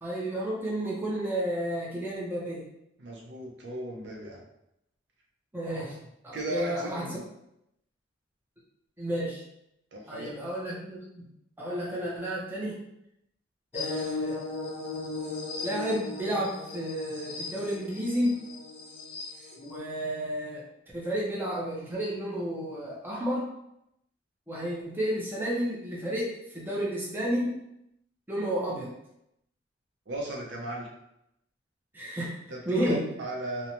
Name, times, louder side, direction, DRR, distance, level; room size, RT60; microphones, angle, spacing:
voice 1, 0.0-2.7 5.5-6.0 6.2-7.2 9.0-9.4 10.1-11.2 11.6-12.8 13.7-14.4 15.6-18.4 19.6-20.6 20.9-23.5 24.5-27.6 28.3-28.9 31.9-32.4 32.7-33.0, equal, 10° right, -6 dB, 0.6 m, -31 dB
voice 2, 3.0-4.4 6.3-7.2 9.9-10.3 30.1-30.9 32.5-33.7, right 1 dB, 65° right, -2 dB, 0.6 m, -36 dB
sound 1, 13.7-19.8, left 3 dB, 35° left, 0.6 m, -37 dB
2.6 x 2.1 x 2.9 m, 0.81 s
head